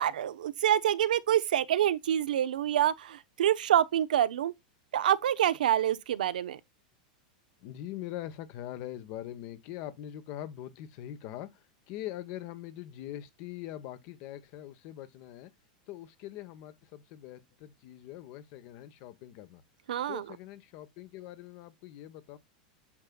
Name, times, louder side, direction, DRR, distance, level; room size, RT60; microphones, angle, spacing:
voice 1, 0.0-4.5 4.9-6.6 19.9-20.2, right 11 dB, 85° right, 0.6 m, -27 dB
voice 2, 7.6-11.5 11.9-15.5 15.9-19.6 20.1-22.4, left 13 dB, 55° left, 1.1 m, -42 dB
8.7 x 5.6 x 2.3 m
hypercardioid pair, 115°, 4 cm